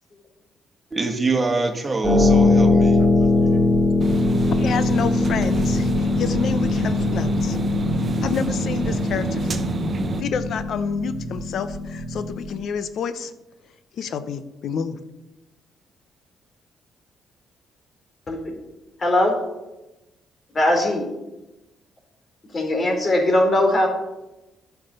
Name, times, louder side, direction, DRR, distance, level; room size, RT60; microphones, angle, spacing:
voice 1, 0.9-3.6, right 3 dB, 25° right, 4 dB, 1.9 m, -25 dB
Harp, 2.0-12.6, left 3 dB, 5° right, 2.4 m, -21 dB
sound 1, 4.0-10.2, right 4 dB, 40° right, 0.9 m, -28 dB
voice 2, 4.6-7.6 8.2-9.6 10.2-13.3 14.0-15.0, left 6 dB, 65° left, 12 dB, 0.8 m, -29 dB
voice 3, 19.0-19.4 20.5-21.1 22.5-23.9, left 1 dB, 35° left, 2 dB, 3.3 m, -20 dB
10.5 x 5.9 x 6.7 m, 0.99 s
cardioid pair, 90°, 0 cm